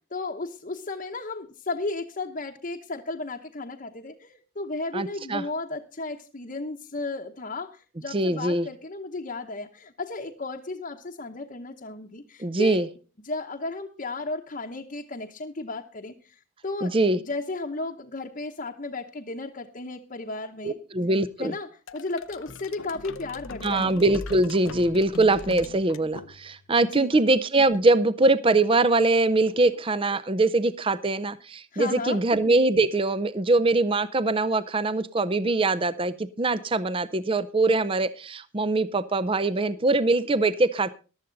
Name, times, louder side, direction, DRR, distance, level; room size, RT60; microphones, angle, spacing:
voice 1, 0.1-12.9 13.2-20.8 21.4-21.7 21.9-23.9 26.9-27.1 31.7-32.2, left 3 dB, 40° left, 0 dB, 0.9 m, -34 dB
voice 2, 4.9-5.4 8.1-8.7 12.4-12.9 16.8-17.2 20.6-21.5 23.6-40.9, right 2 dB, 25° right, 15 dB, 0.5 m, -23 dB
sound 1, 21.9-26.7, left 3 dB, 65° left, 0.7 m, -40 dB
14.5 x 12.0 x 3.9 m, 0.35 s
head